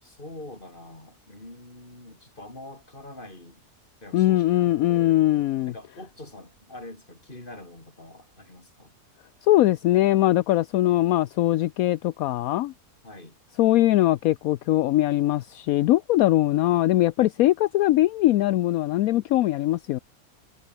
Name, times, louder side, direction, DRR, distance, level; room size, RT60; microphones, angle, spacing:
voice 1, 0.0-3.6 4.0-5.2 5.7-8.9 13.0-13.4, left 1 dB, 30° left, 5.8 m, -44 dB
voice 2, 4.1-5.7 9.5-12.7 13.6-20.0, left 15 dB, 75° left, 1.0 m, -21 dB
omnidirectional pair, 1.6 m